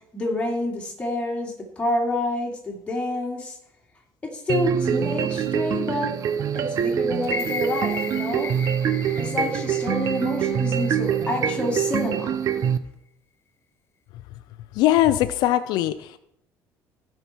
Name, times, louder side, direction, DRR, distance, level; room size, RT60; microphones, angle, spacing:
voice 1, 0.1-3.6 4.2-6.1 6.5-8.5 9.1-12.4, left 2 dB, 15° left, -2 dB, 2.8 m, -28 dB
sound 1, 4.5-12.8, right 8 dB, 50° right, 0.7 m, -25 dB
sound 2, 7.2-11.4 11.8-11.9, left 6 dB, 35° left, 1.0 m, -35 dB
voice 2, 14.7-16.2, left 13 dB, 75° left, 11 dB, 0.5 m, -21 dB
15.5 x 5.8 x 4.4 m, 0.76 s
cardioid pair, 130°, 7 cm